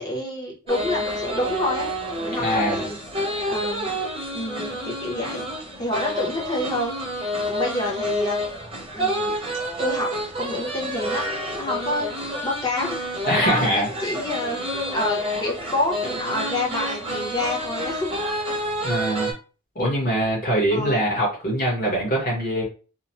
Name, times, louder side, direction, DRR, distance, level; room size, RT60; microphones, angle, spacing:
voice 1, 0.0-1.9 2.2-3.0 3.4-3.9 4.3-5.4 5.8-6.9 7.5-8.4 8.9-9.4 9.8-10.1 10.4-12.1 12.4-13.0 13.4-18.1 20.7-21.0, left 1 dB, 20° left, -1 dB, 0.7 m, -28 dB
sound 1, 0.7-19.3, equal, 25° right, 0.7 m, -29 dB
voice 2, 2.4-2.8 13.2-13.9 18.8-19.3 19.7-22.6, equal, 40° left, -4 dB, 1.1 m, -23 dB
2.9 x 2.1 x 2.8 m, 0.34 s
head